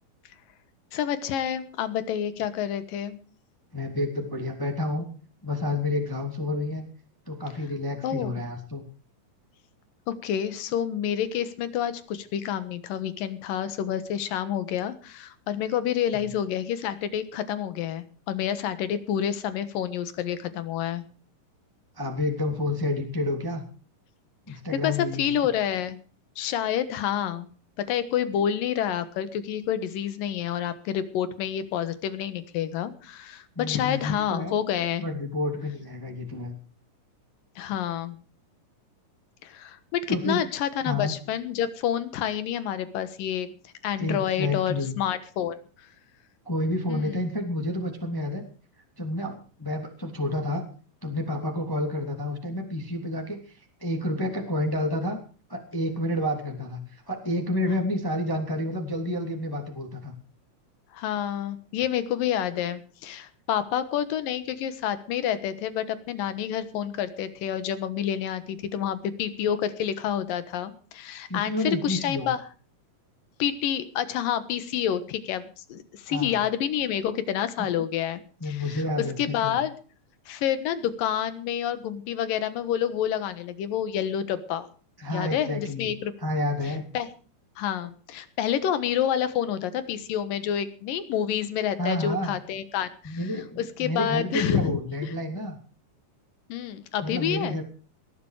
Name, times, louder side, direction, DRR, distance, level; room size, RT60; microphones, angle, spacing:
voice 1, 0.9-3.2 8.0-8.3 10.1-21.0 24.5-24.6 24.8-26.0 26.4-27.5 27.9-35.0 37.6-38.2 39.4-43.5 43.8-45.5 46.9-47.2 60.9-72.4 73.4-79.7 80.3-84.7 85.1-86.1 86.9-87.1 87.6-93.2 93.6-94.7 96.5-97.6, left 9 dB, 80° left, 13 dB, 3.1 m, -28 dB
voice 2, 3.7-5.1 5.4-6.8 7.3-8.8 22.0-23.6 24.5-25.3 33.6-34.5 35.0-36.5 40.1-40.4 40.8-41.1 44.0-44.9 46.4-48.4 49.0-50.6 51.0-53.4 53.8-55.2 55.5-60.1 71.3-72.3 76.1-76.4 78.4-79.6 85.0-85.9 86.2-86.8 91.8-92.4 93.0-95.6 97.0-97.6, left 1 dB, 5° left, 3 dB, 2.2 m, -29 dB
19.0 x 11.5 x 4.9 m, 0.39 s
omnidirectional pair, 3.9 m